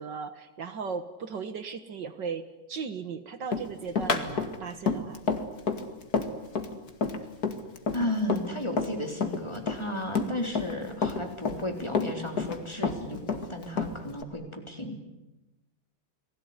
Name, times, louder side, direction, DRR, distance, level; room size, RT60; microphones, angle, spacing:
voice 1, 0.0-5.2, right 5 dB, 65° right, 10 dB, 2.0 m, -37 dB
Run, 3.5-8.9 9.2-10.8 11.0-12.6 12.8-14.2, left 4 dB, 50° left, 2.6 m, -29 dB
voice 2, 7.9-15.1, left 1 dB, 15° left, 3 dB, 3.9 m, -34 dB
30.0 x 20.0 x 9.7 m, 0.99 s
omnidirectional pair, 2.1 m